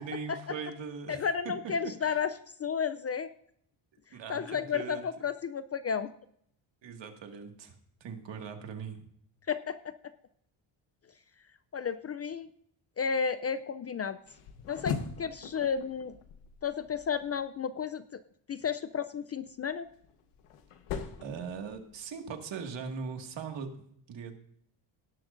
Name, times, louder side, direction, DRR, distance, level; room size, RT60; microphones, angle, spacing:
voice 1, 0.0-2.2 4.1-5.0 6.8-7.7 8.0-9.1 21.2-24.3, right 6 dB, 60° right, 4 dB, 2.0 m, -40 dB
voice 2, 1.1-2.3 2.6-3.3 4.3-6.1 9.5-9.9 11.7-12.5 13.0-14.2 14.7-16.1 16.6-18.2 18.5-19.9, left 6 dB, 35° left, 13 dB, 0.4 m, -32 dB
sound 1, 14.3-17.4 19.6-22.2, left 6 dB, 85° left, 1.3 m, -41 dB
18.0 x 11.0 x 2.6 m, 0.68 s
cardioid pair, 135°, 49 cm